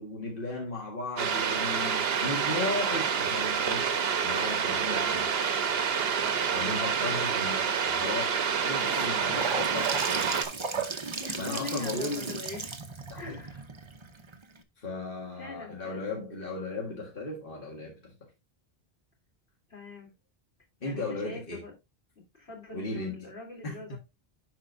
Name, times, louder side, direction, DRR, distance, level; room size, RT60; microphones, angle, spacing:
voice 1, 0.0-5.4 6.5-10.4 11.4-12.5 13.1-13.4 14.8-18.1 20.8-21.6 22.7-23.3 23.6-24.0, left 2 dB, 55° left, 1.9 m, -36 dB
sound 1, 1.2-10.5, right 7 dB, 70° right, 1.0 m, -28 dB
voice 2, 4.9-5.5 6.0-7.2 8.6-9.0 11.2-12.7 13.1-13.6 15.4-16.2 19.7-20.1 20.8-21.7 22.3-24.0, left 3 dB, 85° left, 3.4 m, -44 dB
Gurgling / Sink (filling or washing) / Bathtub (filling or washing), 8.5-14.6, right 4 dB, 30° right, 0.7 m, -35 dB
11.0 x 4.5 x 2.5 m
omnidirectional pair, 1.1 m